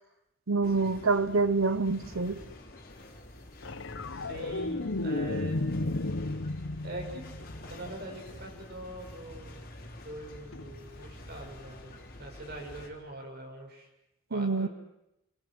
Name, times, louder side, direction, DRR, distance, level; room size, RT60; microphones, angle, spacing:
voice 1, 0.5-2.4 14.3-14.7, right 3 dB, 90° right, 1.0 m, -26 dB
sound 1, 0.6-12.9, left 1 dB, 50° left, 4.2 m, -47 dB
sound 2, 3.6-8.1 10.5-10.7, left 2 dB, 65° left, 0.9 m, -33 dB
voice 2, 4.1-5.6 6.8-7.3 7.7-9.6 10.0-13.9 14.3-14.7, right 1 dB, 50° right, 6.7 m, -43 dB
28.5 x 21.5 x 7.9 m
head